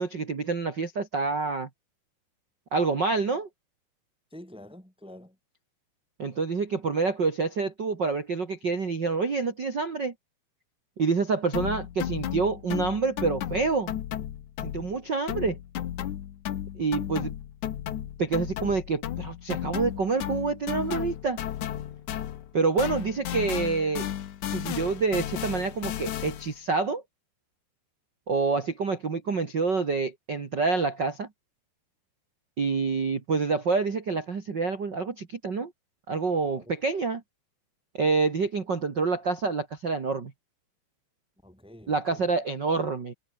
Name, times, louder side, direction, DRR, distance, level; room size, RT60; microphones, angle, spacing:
voice 1, 0.0-1.7 2.7-3.5 6.2-10.1 11.0-14.0 14.6-15.6 16.7-17.3 18.2-21.4 22.5-24.1 24.5-27.0 28.3-31.3 32.6-35.7 36.1-37.2 38.0-40.3 41.9-43.1, right 4 dB, 90° right, 0.9 m, -27 dB
voice 2, 4.3-5.4 36.5-36.7 41.4-42.3, left 1 dB, ahead, 5.8 m, -47 dB
sound 1, 11.5-15.0 15.3-22.5 22.8-26.6, left 11 dB, 65° left, 2.0 m, -34 dB
omnidirectional pair, 5.5 m